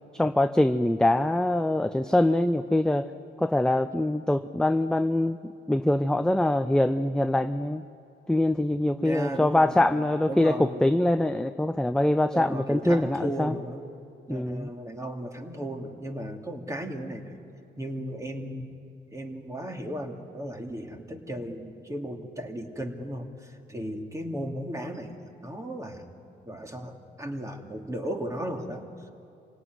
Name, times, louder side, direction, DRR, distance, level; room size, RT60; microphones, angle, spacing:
voice 1, 0.1-3.1 3.4-7.8 8.3-13.5 14.3-14.7, left 1 dB, 5° left, 9 dB, 0.6 m, -24 dB
voice 2, 9.0-10.0 10.3-10.9 12.3-13.8 14.3-17.3 17.8-18.7 19.1-26.0 26.5-29.1, equal, 15° right, 3 dB, 2.6 m, -35 dB
26.5 x 17.5 x 9.6 m, 2.6 s
cardioid pair, 90°, 20 cm